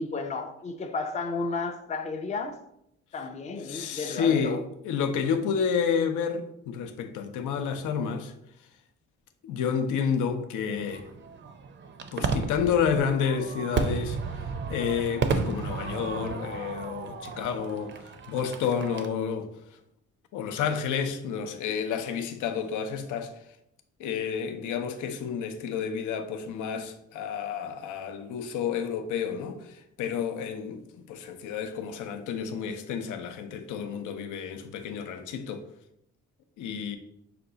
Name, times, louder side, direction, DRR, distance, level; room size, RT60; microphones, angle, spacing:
voice 1, 0.0-2.6 3.1-4.6, left 3 dB, 25° left, 0.4 m, -32 dB
voice 2, 3.6-4.6 4.8-8.3 9.4-11.1 12.1-14.2 14.7-18.0 18.3-19.5 20.3-23.3 24.0-35.6 36.6-37.0, left 7 dB, 85° left, 0.6 m, -30 dB
Fireworks, 10.7-19.1, right 5 dB, 40° right, 0.5 m, -33 dB
5.8 x 2.3 x 3.8 m
cardioid pair, 90°, 30 cm